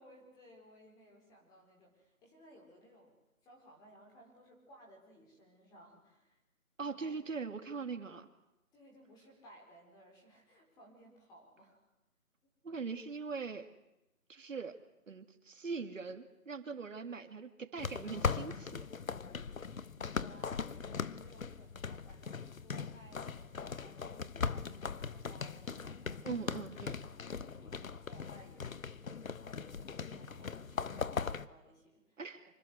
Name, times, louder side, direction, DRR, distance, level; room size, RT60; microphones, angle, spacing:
voice 1, 0.0-3.1 3.4-6.4 6.9-7.1 8.7-11.8 20.0-26.3 27.5-32.2, equal, 10° left, 0 dB, 4.7 m, -60 dB
voice 2, 6.8-8.3 12.6-13.7 14.3-14.7 15.1-18.9 26.2-27.0 32.2-32.4, right 5 dB, 60° right, 8 dB, 2.8 m, -41 dB
sound 1, 17.8-31.5, left 5 dB, 70° left, 1.4 m, -40 dB
26.5 x 25.0 x 8.2 m, 0.92 s
hypercardioid pair, 165°, 42 cm